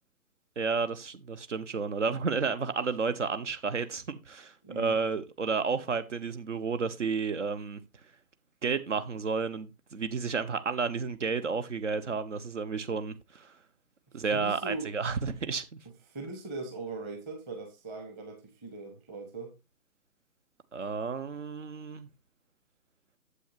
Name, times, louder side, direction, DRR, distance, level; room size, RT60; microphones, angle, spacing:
voice 1, 0.6-7.8 8.6-13.5 14.1-15.7 20.7-22.1, right 5 dB, 55° right, 1.3 m, -31 dB
voice 2, 4.6-5.0 14.3-14.9 16.1-19.5, right 3 dB, 10° right, 1.2 m, -39 dB
11.5 x 8.0 x 2.6 m
hypercardioid pair, 160°, 44 cm